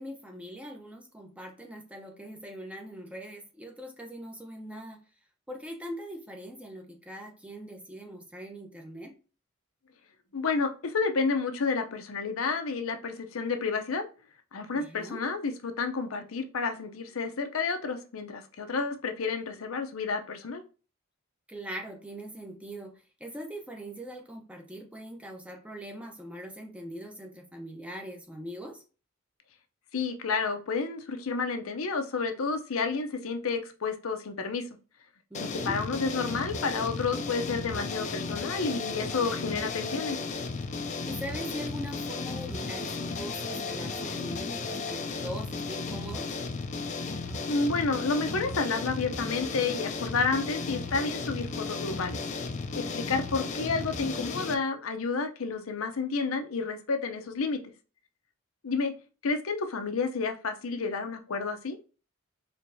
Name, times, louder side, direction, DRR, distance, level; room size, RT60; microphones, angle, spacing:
voice 1, 0.0-5.0 5.5-9.1 14.7-15.2 21.5-28.8 35.3-35.8 41.1-46.4 52.9-53.0, equal, 5° right, 3 dB, 0.7 m, -41 dB
voice 2, 10.3-14.1 14.5-20.6 29.9-34.7 35.7-40.2 47.5-52.2 52.7-57.6 58.6-58.9 59.2-61.8, left 4 dB, 80° left, 6 dB, 0.7 m, -30 dB
sound 1, 35.3-54.5, left 4 dB, 35° left, 0.4 m, -34 dB
4.5 x 3.2 x 2.7 m, 0.35 s
head